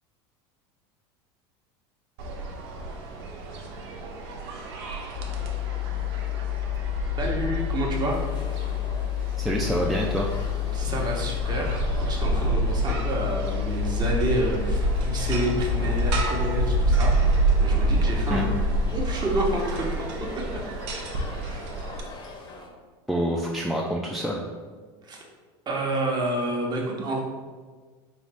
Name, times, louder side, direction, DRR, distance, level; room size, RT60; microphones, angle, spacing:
sound 1, 2.2-22.0, right 3 dB, 75° right, 0.7 m, -28 dB
sound 2, 5.1-18.7, left 16 dB, 80° left, 0.4 m, -30 dB
voice 1, 7.2-8.2 10.7-17.1 17.6-18.5 18.9-20.1 21.3-21.7 25.0-25.2 25.7-27.2, right 1 dB, 30° right, -1 dB, 0.9 m, -29 dB
sound 3, 8.1-22.7, left 2 dB, 30° left, 0.7 m, -44 dB
voice 2, 9.4-10.3 18.3-18.5 23.1-24.4, equal, ahead, -3 dB, 0.3 m, -26 dB
3.9 x 2.9 x 3.4 m, 1.5 s
supercardioid pair, 105°, 14 cm